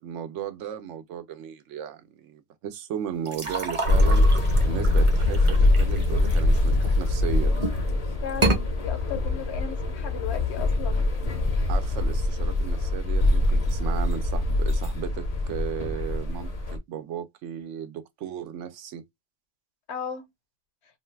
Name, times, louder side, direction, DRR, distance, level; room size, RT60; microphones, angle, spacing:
voice 1, 0.0-4.3 4.6-7.6 11.7-19.0, right 9 dB, 80° right, 0.9 m, -35 dB
sound 1, 3.3-7.1 7.5-7.9 8.3-8.6, right 2 dB, 30° right, 0.7 m, -29 dB
sound 2, 3.8-16.8, left 2 dB, 45° left, 0.5 m, -23 dB
voice 2, 8.2-11.3 19.9-20.3, left 7 dB, 70° left, 0.9 m, -35 dB
2.5 x 2.3 x 3.1 m
omnidirectional pair, 1.2 m